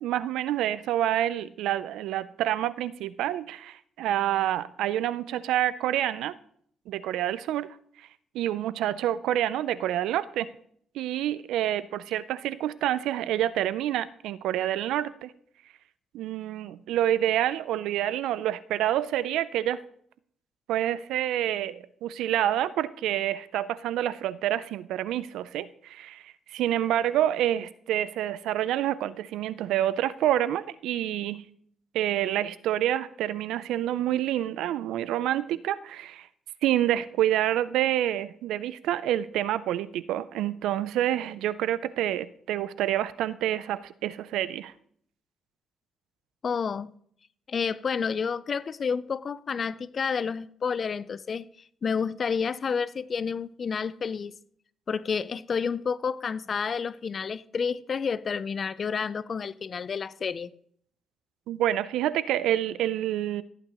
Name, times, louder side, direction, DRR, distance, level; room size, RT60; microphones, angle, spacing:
voice 1, 0.0-6.3 6.9-7.7 8.3-10.5 10.9-15.3 16.1-19.8 20.7-31.4 31.9-36.3 36.6-44.7 61.5-63.4, right 12 dB, 85° right, 0.4 m, -28 dB
voice 2, 46.4-46.9 47.5-51.5 51.8-54.3 54.9-60.5, left 6 dB, 45° left, 0.4 m, -30 dB
16.0 x 8.9 x 3.0 m
cardioid pair, 90°, 0 cm